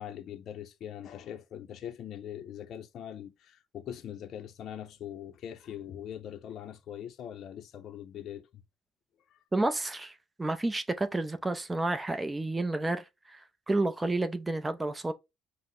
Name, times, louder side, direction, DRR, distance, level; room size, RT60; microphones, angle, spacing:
voice 1, 0.0-8.6 9.3-9.4, left 10 dB, 60° left, 0.5 m, -42 dB
voice 2, 9.5-15.1, right 2 dB, 15° right, 0.5 m, -31 dB
5.5 x 2.1 x 3.7 m
cardioid pair, 95°, 0 cm